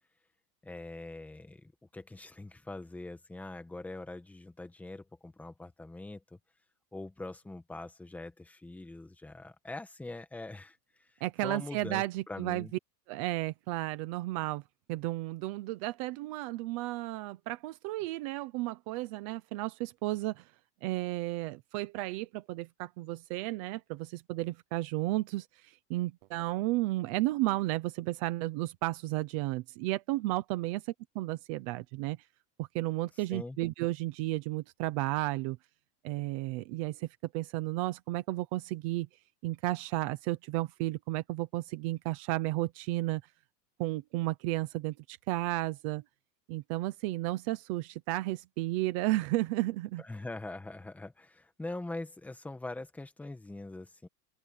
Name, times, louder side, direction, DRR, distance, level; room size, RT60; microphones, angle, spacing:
voice 1, 0.6-6.4 6.9-12.7 33.3-33.6 50.0-54.1, left 2 dB, 5° left, 1.1 m, -43 dB
voice 2, 11.2-12.7 13.1-14.6 14.9-20.4 20.8-30.8 31.1-32.2 32.6-35.6 36.0-37.1 37.3-39.1 39.4-43.2 43.8-46.0 46.5-50.0, right 18 dB, 25° right, 0.4 m, -33 dB
open air
supercardioid pair, 170°, 48 cm